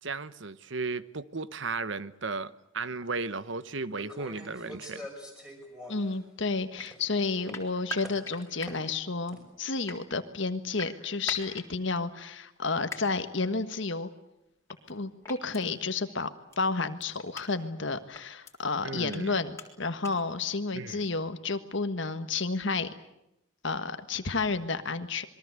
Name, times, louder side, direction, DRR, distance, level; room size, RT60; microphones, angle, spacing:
voice 1, 0.0-5.0 18.8-19.3 20.7-21.1, right 4 dB, 60° right, 15 dB, 1.1 m, -35 dB
sound 1, 3.0-3.1 3.9-6.2 6.5-7.1 7.4-7.5 8.0-9.0 9.3-9.4, left 1 dB, 5° right, 5.8 m, -45 dB
voice 2, 5.9-14.1 14.9-16.3 16.6-22.9 23.6-25.2, left 4 dB, 60° left, 9 dB, 1.5 m, -31 dB
sound 2, 6.8-6.9 7.5-8.7 9.6-10.0 10.8-11.7 12.9-13.0 14.7-14.9 15.2-15.6 16.5-16.6 17.0-17.5 18.1-18.5 19.1-19.2 19.6-19.7 20.0-20.1, left 2 dB, 15° left, 3.7 m, -39 dB
27.5 x 22.5 x 8.1 m, 0.84 s
head